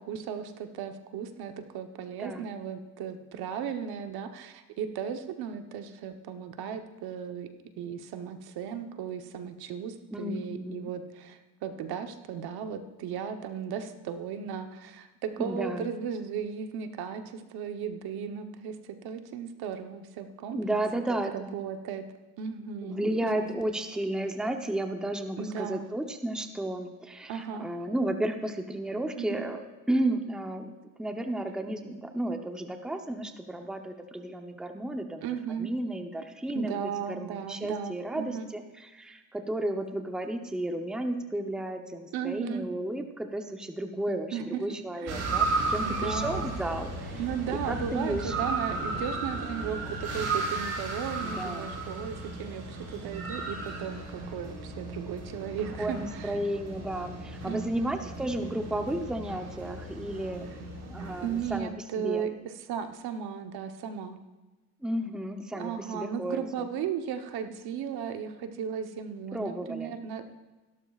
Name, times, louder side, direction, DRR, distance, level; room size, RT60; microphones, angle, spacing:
voice 1, 0.0-7.5 7.8-20.6 21.3-22.1 22.4-23.5 25.4-25.8 27.3-27.7 29.1-29.5 35.2-35.7 36.5-38.5 42.1-42.7 44.3-44.6 45.0-45.2 45.9-46.5 47.2-56.4 57.5-58.0 61.2-64.2 65.5-70.3, right 7 dB, 70° right, 7 dB, 1.1 m, -36 dB
voice 2, 2.2-2.5 10.1-10.9 15.4-15.9 20.5-21.6 22.8-29.6 29.9-35.2 35.6-36.8 37.1-47.2 47.7-48.6 51.2-51.8 55.8-60.5 60.9-62.3 64.8-66.7 69.3-70.0, right 1 dB, ahead, 5 dB, 0.8 m, -33 dB
sound 1, 45.1-61.6, right 3 dB, 45° right, 4.0 m, -35 dB
16.5 x 12.0 x 2.4 m, 1.2 s
cardioid pair, 115°, 39 cm